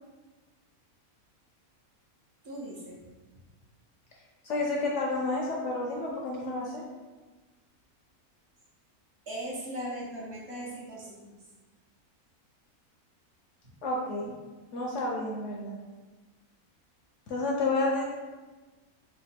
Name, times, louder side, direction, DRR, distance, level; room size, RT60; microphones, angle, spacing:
voice 1, 2.4-3.0 9.3-11.3, right 1 dB, 55° right, -6 dB, 1.0 m, -38 dB
voice 2, 4.4-6.8 13.8-14.3 14.7-15.8 17.3-18.0, left 2 dB, 65° left, -2 dB, 0.8 m, -30 dB
3.4 x 2.1 x 4.1 m, 1.2 s
omnidirectional pair, 1.5 m